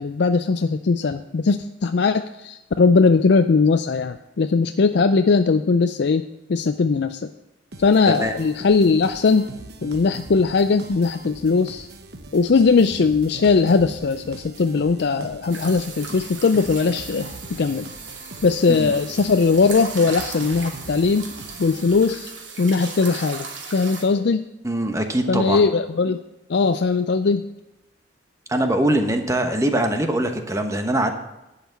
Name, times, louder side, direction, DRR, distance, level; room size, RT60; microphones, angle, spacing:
voice 1, 0.0-6.2 6.5-7.3 7.8-9.5 9.8-11.9 12.3-17.8 18.4-21.3 21.6-22.3 22.6-24.5 25.3-26.2 26.5-27.5, left 4 dB, 60° left, 9 dB, 0.4 m, -19 dB
sound 1, 7.7-22.3, right 2 dB, 55° right, 1.1 m, -41 dB
sound 2, 15.5-24.0, right 4 dB, 75° right, 2.5 m, -37 dB
voice 2, 24.6-25.6 28.5-31.1, right 1 dB, 15° right, 5 dB, 1.1 m, -22 dB
11.5 x 5.8 x 8.4 m, 0.96 s
head